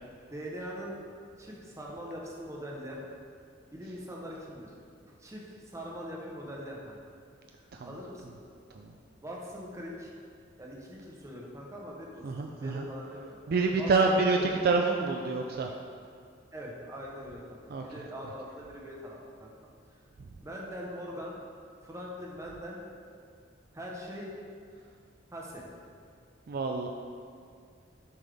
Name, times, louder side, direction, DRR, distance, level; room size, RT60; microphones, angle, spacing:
voice 1, 0.3-0.9 1.4-3.0 3.7-4.7 5.2-7.0 7.5-8.4 9.2-10.1 10.6-14.5 16.5-20.0 20.4-21.4 21.8-22.8 23.7-24.4 25.3-25.7, equal, 15° right, -3 dB, 1.0 m, -42 dB
voice 2, 12.2-12.9 13.5-15.7 17.7-17.8 26.5-26.9, right 3 dB, 55° right, 2 dB, 0.4 m, -27 dB
7.4 x 5.3 x 3.5 m, 2.2 s
head